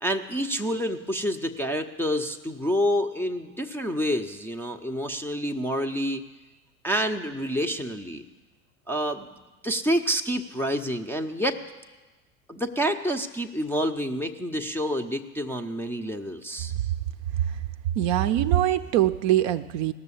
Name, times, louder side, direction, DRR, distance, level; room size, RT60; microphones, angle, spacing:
voice 1, 0.0-6.2 6.8-8.2 8.9-9.3 9.6-11.6 12.5-16.7, equal, 5° left, 5 dB, 0.5 m, -28 dB
voice 2, 18.0-19.9, right 12 dB, 45° right, 10 dB, 0.6 m, -23 dB
17.0 x 6.8 x 8.3 m, 1.2 s
hypercardioid pair, 85°, 44 cm